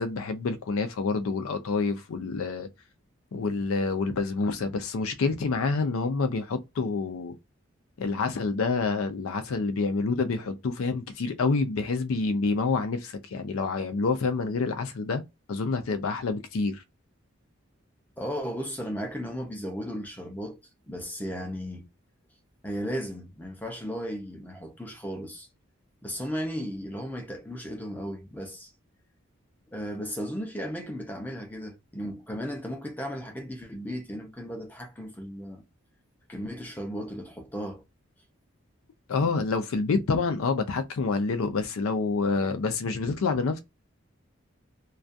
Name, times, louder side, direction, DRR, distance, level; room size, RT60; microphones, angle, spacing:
voice 1, 0.0-2.7 3.3-7.3 8.0-15.2 15.5-16.8 39.1-43.6, left 4 dB, 90° left, 0.4 m, -27 dB
voice 2, 18.2-20.6 20.9-21.9 22.6-25.5 26.0-28.7 29.7-35.6 36.3-37.8, equal, 10° left, 0.5 m, -35 dB
2.3 x 2.2 x 2.5 m
head